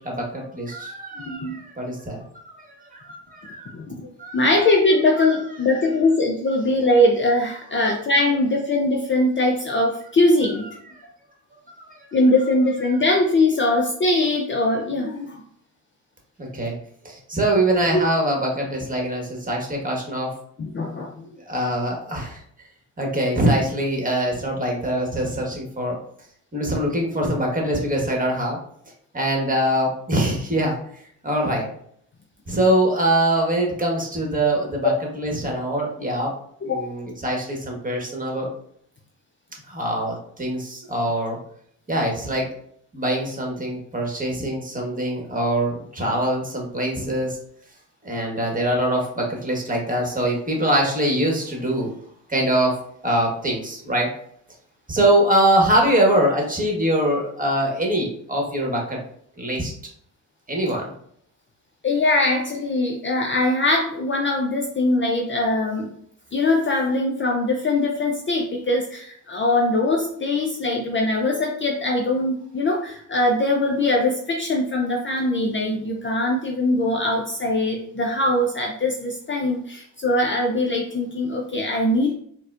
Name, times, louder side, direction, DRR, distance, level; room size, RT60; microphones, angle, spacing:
voice 1, 0.0-3.7 4.2-4.7 5.2-5.9 7.7-7.9 10.5-11.0 11.8-13.1 13.6-13.8 16.4-16.7 17.0-20.3 21.3-22.4 23.0-26.0 26.5-28.6 29.1-30.8 31.2-31.7 32.5-36.3 36.6-38.5 39.7-41.4 41.9-42.5 42.9-47.4 48.0-51.9 52.3-52.7 53.0-54.1 54.9-59.0 59.4-59.7 60.5-60.9, right 1 dB, 20° right, 0 dB, 1.3 m, -23 dB
voice 2, 1.3-1.6 3.7-4.1 4.3-10.7 12.1-15.4 20.6-21.3 36.7-36.9 61.8-65.9 66.3-82.2, left 2 dB, 30° left, 1 dB, 0.5 m, -21 dB
4.1 x 2.2 x 2.4 m, 0.66 s
hypercardioid pair, 50°, 40 cm